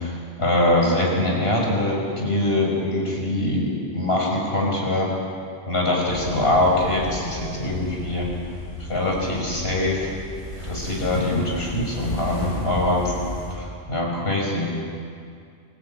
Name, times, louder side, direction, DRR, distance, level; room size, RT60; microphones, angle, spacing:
voice 1, 0.0-5.1 5.7-8.3 8.9-10.1 10.6-13.1 13.5-14.6, left 1 dB, 60° left, -1 dB, 5.9 m, -23 dB
sound 1, 6.1-13.5, left 1 dB, 80° left, 6.3 m, -33 dB
25.5 x 17.5 x 8.7 m, 2.3 s
omnidirectional pair, 1.1 m